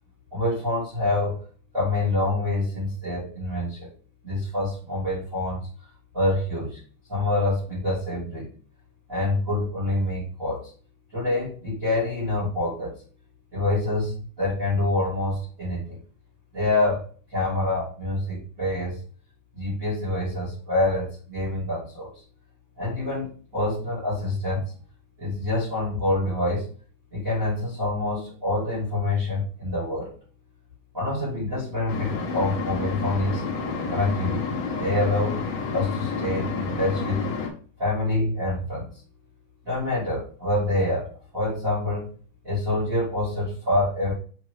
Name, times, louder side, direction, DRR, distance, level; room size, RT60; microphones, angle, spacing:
voice 1, 0.3-1.3 1.7-3.9 4.2-5.6 6.1-6.8 7.1-8.5 9.1-10.6 11.1-12.9 13.5-16.0 16.5-17.0 17.3-19.0 19.5-22.1 22.8-23.3 23.5-24.7 25.2-26.7 27.1-30.1 30.9-33.4 33.9-34.4 34.8-35.4 35.7-37.2 37.8-38.9 39.6-41.1 41.3-42.1 42.4-44.1, left 2 dB, 25° right, -7 dB, 2.4 m, -26 dB
sound 1, 31.9-37.5, left 5 dB, 80° left, 1.4 m, -29 dB
5.9 x 5.1 x 3.3 m, 0.42 s
omnidirectional pair, 4.7 m